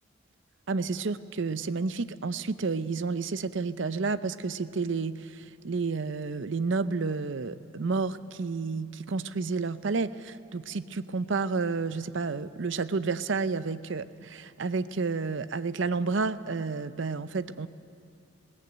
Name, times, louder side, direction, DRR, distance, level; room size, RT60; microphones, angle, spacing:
voice 1, 0.7-17.7, right 4 dB, 60° right, 14 dB, 0.6 m, -30 dB
20.5 x 17.5 x 7.9 m, 2.7 s
head